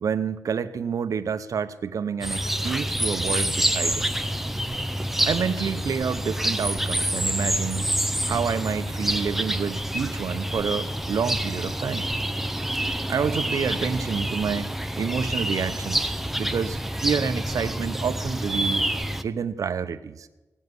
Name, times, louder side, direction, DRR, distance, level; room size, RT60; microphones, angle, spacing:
voice 1, 0.0-4.1 5.3-7.9 8.3-12.1 13.1-14.7 15.0-18.9 19.2-20.3, right 6 dB, 70° right, 10 dB, 0.8 m, -28 dB
sound 1, 2.2-19.2, right 1 dB, 5° right, 0.6 m, -27 dB
17.5 x 7.3 x 9.7 m, 1.1 s
wide cardioid pair, 125°, 6 cm